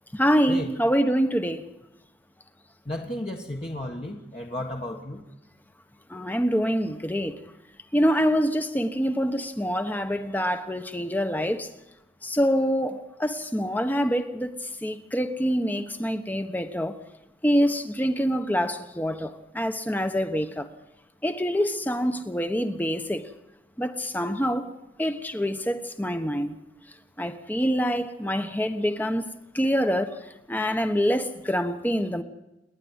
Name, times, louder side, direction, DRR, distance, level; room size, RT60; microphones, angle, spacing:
voice 1, 0.1-1.6 6.1-7.4 7.9-11.7 12.2-17.0 17.4-20.7 21.2-23.3 23.8-24.7 25.0-26.6 27.2-30.2 30.5-32.2, equal, 10° left, 1.1 m, -26 dB
voice 2, 2.8-5.2, left 1 dB, 30° left, 1.5 m, -33 dB
29.0 x 11.0 x 9.7 m
head